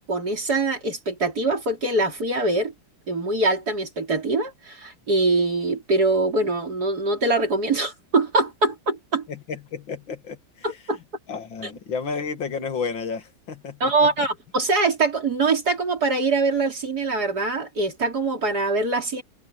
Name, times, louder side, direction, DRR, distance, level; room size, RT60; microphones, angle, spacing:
voice 1, 0.1-2.7 3.1-9.3 10.6-11.0 13.8-19.2, right 3 dB, 50° right, 4.1 m, -23 dB
voice 2, 9.3-10.4 11.3-13.9, left 5 dB, 70° left, 2.9 m, -31 dB
omnidirectional pair, 2.2 m